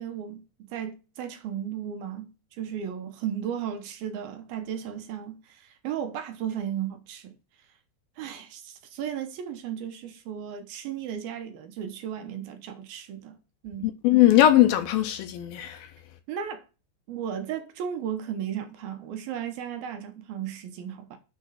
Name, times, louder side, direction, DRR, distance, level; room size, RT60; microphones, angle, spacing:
voice 1, 0.0-7.4 8.2-14.0 16.3-16.6 17.1-21.2, right 9 dB, 70° right, 2.7 m, -35 dB
voice 2, 13.8-15.9, left 13 dB, 75° left, 2.3 m, -20 dB
6.7 x 6.2 x 6.3 m
omnidirectional pair, 4.7 m